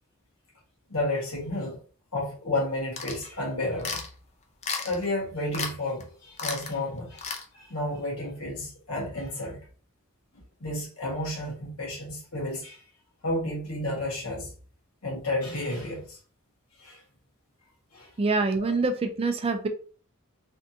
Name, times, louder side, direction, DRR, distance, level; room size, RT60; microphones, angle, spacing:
voice 1, 0.9-1.8 2.1-4.0 4.8-7.3 7.5-9.6 10.3-12.8 13.2-14.5 15.0-16.2 16.8-17.0 17.9-18.1 18.6-18.7, left 1 dB, 85° left, -3 dB, 1.5 m, -31 dB
sound 1, 3.0-3.3 3.8-4.1 4.6-5.0 5.5-5.7 6.0-6.1 6.4-6.7 7.2-7.4, left 5 dB, 30° left, 0.5 m, -33 dB
voice 2, 18.2-19.7, right 3 dB, 25° right, 7 dB, 0.3 m, -25 dB
3.3 x 2.6 x 2.7 m, 0.40 s
head